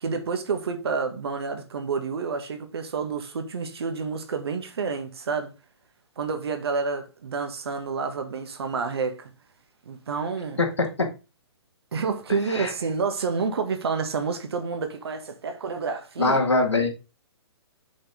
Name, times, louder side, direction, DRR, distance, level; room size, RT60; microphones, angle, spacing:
voice 1, 0.0-5.5 6.2-9.3 9.8-10.6 11.9-16.4, right 5 dB, 65° right, 1.6 m, -29 dB
voice 2, 10.6-11.1 12.5-12.7 16.2-16.9, left 3 dB, 90° left, 2.1 m, -22 dB
6.1 x 4.4 x 5.0 m
hypercardioid pair, 130°, 14 cm